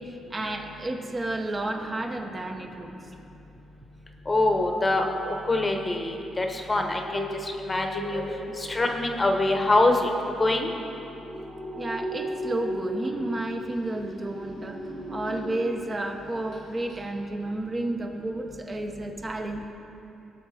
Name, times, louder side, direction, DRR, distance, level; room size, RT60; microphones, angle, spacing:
voice 1, 0.0-2.9 8.5-8.6 11.7-14.8 15.1-19.7, right 2 dB, 30° right, 2 dB, 0.9 m, -31 dB
voice 2, 4.3-8.2 8.6-10.1 10.4-10.7, left 2 dB, 25° left, 3 dB, 1.0 m, -24 dB
sound 1, 6.9-16.0 16.3-16.6 16.9-17.0, equal, 75° right, 2.3 m, -37 dB
18.0 x 6.2 x 4.2 m, 2.9 s
cardioid pair, 90°, 0 cm